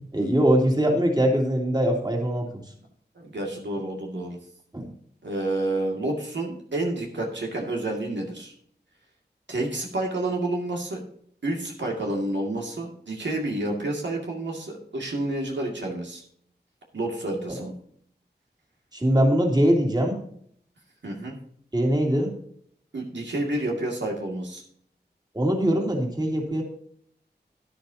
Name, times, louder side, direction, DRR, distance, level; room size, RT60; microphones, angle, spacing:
voice 1, 0.1-2.5 4.7-4.9 17.5-17.6 18.9-20.2 21.7-22.3 25.3-26.6, equal, 20° right, 0 dB, 2.9 m, -22 dB
voice 2, 3.2-4.4 5.2-8.5 9.5-11.0 11.4-16.2 16.9-17.7 21.0-21.4 22.9-24.6, right 2 dB, 85° right, 0 dB, 2.2 m, -29 dB
12.0 x 10.5 x 2.8 m, 0.63 s
wide cardioid pair, 60°, 18 cm